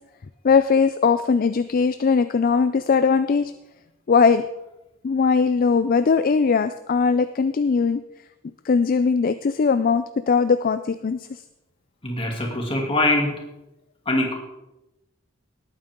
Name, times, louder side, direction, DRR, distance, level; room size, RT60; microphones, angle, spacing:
voice 1, 0.4-3.5 4.1-4.4 5.0-8.0 8.6-11.2, left 5 dB, 45° left, 12 dB, 0.4 m, -20 dB
voice 2, 12.0-13.3 14.1-14.4, left 2 dB, 30° left, 0 dB, 2.6 m, -22 dB
18.0 x 9.0 x 3.7 m, 0.92 s
head